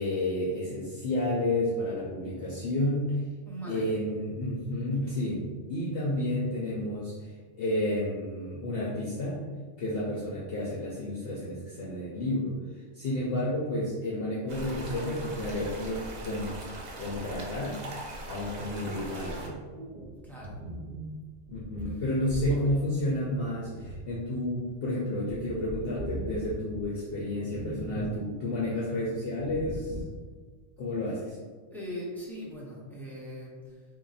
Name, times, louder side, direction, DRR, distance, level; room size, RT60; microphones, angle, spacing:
voice 1, 0.0-3.2 3.7-9.4 9.8-12.6 12.9-16.6 17.0-17.8 18.2-19.6 21.5-30.0 30.8-31.4, left 1 dB, 55° left, -6 dB, 0.7 m, -31 dB
voice 2, 3.5-3.9 4.9-5.2 20.2-20.6 21.8-22.0 22.5-22.8 31.7-33.8, equal, ahead, -6 dB, 0.5 m, -41 dB
sound 1, 14.5-19.5, right 1 dB, 80° right, 0.3 m, -40 dB
sound 2, 19.7-24.7 25.0-26.9 27.4-28.2 28.5-28.6 29.3-30.2, right 1 dB, 55° right, 0.7 m, -39 dB
2.8 x 2.5 x 3.9 m, 1.4 s
omnidirectional pair, 1.4 m